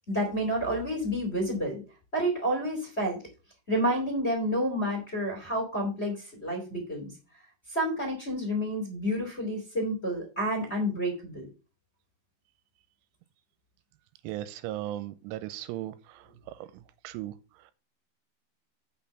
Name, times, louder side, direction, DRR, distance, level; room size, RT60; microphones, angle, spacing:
voice 1, 0.1-1.8 2.1-3.2 3.7-7.0 7.7-11.4, equal, 25° left, 1.5 m, -29 dB
voice 2, 14.2-15.9 17.0-17.3, right 14 dB, 85° right, 2.9 m, -36 dB
6.3 x 6.0 x 7.0 m
omnidirectional pair, 5.9 m